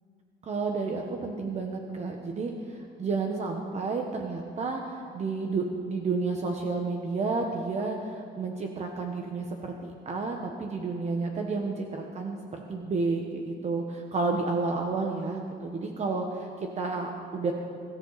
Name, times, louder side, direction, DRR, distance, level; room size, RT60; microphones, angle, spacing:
voice 1, 0.4-17.5, right 3 dB, 35° right, 2 dB, 1.2 m, -31 dB
23.5 x 14.0 x 4.1 m, 2.4 s
cardioid pair, 175°, 19 cm